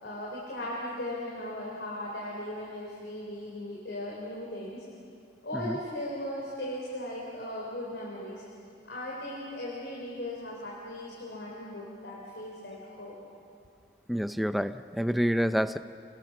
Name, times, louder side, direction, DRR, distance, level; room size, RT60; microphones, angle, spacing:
voice 1, 0.0-4.8 5.4-8.4 8.9-13.2, left 1 dB, 80° left, -4 dB, 4.2 m, -38 dB
voice 2, 14.1-15.8, equal, ahead, 11 dB, 0.5 m, -28 dB
28.5 x 20.5 x 6.1 m, 2.4 s
head